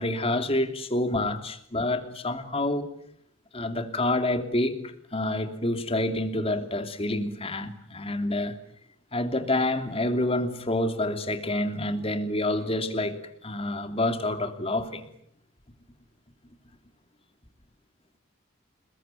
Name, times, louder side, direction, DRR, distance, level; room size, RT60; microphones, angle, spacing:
voice 1, 0.0-2.9 3.5-8.6 9.1-15.1, left 1 dB, 30° left, 2.9 m, -28 dB
29.5 x 21.5 x 9.1 m
head